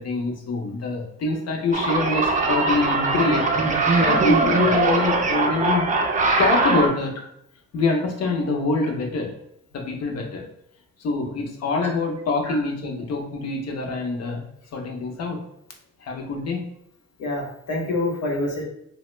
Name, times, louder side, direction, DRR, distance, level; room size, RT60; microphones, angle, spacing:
voice 1, 0.0-7.2 7.7-9.3 9.7-10.5 11.0-14.4 14.7-15.4 16.0-16.6, left 3 dB, 55° left, 2 dB, 0.8 m, -25 dB
sound 1, 1.7-6.9, right 3 dB, 25° right, 0.4 m, -21 dB
voice 2, 17.2-18.6, left 2 dB, 80° left, -1 dB, 1.1 m, -26 dB
3.0 x 2.1 x 3.1 m, 0.77 s
cardioid pair, 90°, 30 cm